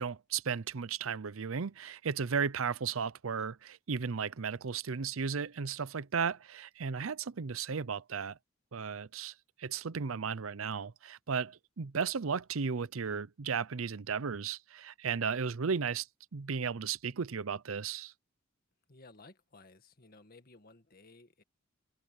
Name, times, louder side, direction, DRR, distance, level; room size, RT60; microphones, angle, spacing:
voice 1, 0.0-8.4 8.7-9.3 9.6-16.1 16.3-18.1, right 6 dB, 85° right, 0.6 m, -35 dB
voice 2, 18.9-21.4, left 3 dB, 45° left, 1.9 m, -57 dB
head